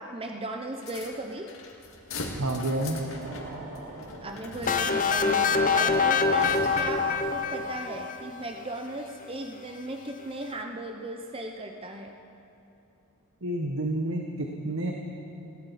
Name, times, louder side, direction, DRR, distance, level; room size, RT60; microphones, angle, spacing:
voice 1, 0.0-1.5 4.2-12.2, right 1 dB, 25° right, 4 dB, 0.7 m, -37 dB
sound 1, 0.8-7.1, left 2 dB, 65° left, 2.1 m, -41 dB
voice 2, 2.4-3.0 13.4-14.9, right 1 dB, 65° right, 1 dB, 1.3 m, -29 dB
sound 2, 2.8-5.2, right 2 dB, 85° right, 3.2 m, -44 dB
sound 3, 4.7-8.4, left 5 dB, 35° left, 0.7 m, -25 dB
20.0 x 17.5 x 4.2 m, 3.0 s
head